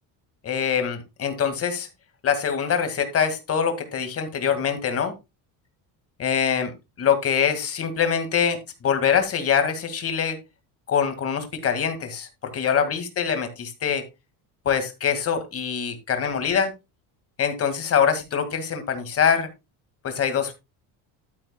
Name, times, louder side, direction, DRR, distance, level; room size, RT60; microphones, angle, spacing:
voice 1, 0.4-1.9 2.2-5.1 6.2-6.7 7.0-8.6 8.8-10.4 10.9-12.3 12.5-14.0 14.7-16.7 17.4-19.5 20.0-20.5, left 7 dB, 30° left, 8 dB, 2.1 m, -24 dB
12.0 x 9.5 x 2.3 m, 0.24 s
cardioid pair, 150°, 44 cm